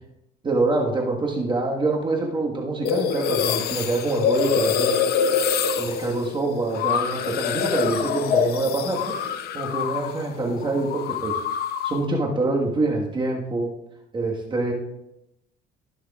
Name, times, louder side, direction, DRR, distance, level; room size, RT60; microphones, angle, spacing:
voice 1, 0.4-4.9 5.8-9.2 9.5-11.4 11.8-13.7 14.1-14.7, right 2 dB, 30° right, -1 dB, 1.6 m, -25 dB
sound 1, 2.8-10.3 10.5-12.0, left 8 dB, 70° left, 0.7 m, -25 dB
18.0 x 6.4 x 2.4 m, 0.85 s
cardioid pair, 110°, 17 cm